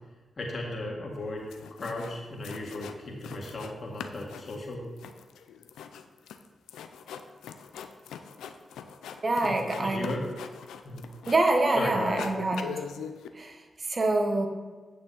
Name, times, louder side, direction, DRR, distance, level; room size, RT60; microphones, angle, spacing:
voice 1, 0.4-4.9 9.4-10.2 10.8-11.1 11.7-12.3, left 2 dB, 50° left, -2 dB, 2.0 m, -36 dB
sound 1, 1.2-1.3 1.5-2.2 2.4-3.7 4.0-11.7 12.0-13.3, left 7 dB, 85° left, 0.4 m, -42 dB
voice 2, 9.2-10.1 11.3-12.7 13.3-14.5, right 2 dB, 45° right, 3 dB, 1.4 m, -26 dB
8.6 x 6.2 x 4.3 m, 1.3 s
supercardioid pair, 45°, 0 cm